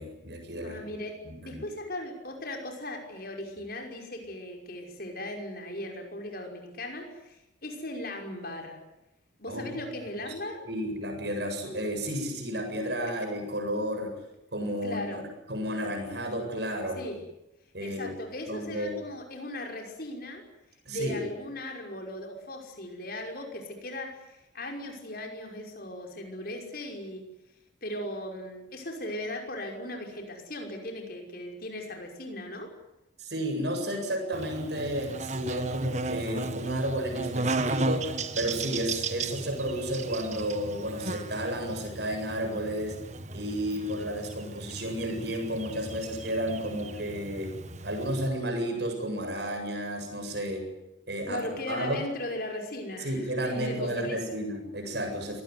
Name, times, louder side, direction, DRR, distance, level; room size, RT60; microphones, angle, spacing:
voice 1, 0.0-0.8 1.2-1.6 9.5-9.7 10.3-10.4 10.6-14.1 14.5-15.2 15.5-17.0 17.7-18.1 18.5-18.9 20.8-21.2 33.2-43.0 43.3-47.6 47.8-50.7 51.1-52.0 53.0-55.4, equal, 60° right, 4 dB, 7.9 m, -32 dB
voice 2, 0.6-1.1 1.4-8.8 9.4-10.6 14.8-15.2 17.0-17.2 17.8-20.4 20.9-27.2 27.8-32.7 51.3-54.4, left 1 dB, 50° left, 2 dB, 5.7 m, -38 dB
Buzz, 34.3-48.3, right 3 dB, 35° right, 1.6 m, -35 dB
26.0 x 19.0 x 9.7 m, 0.90 s
head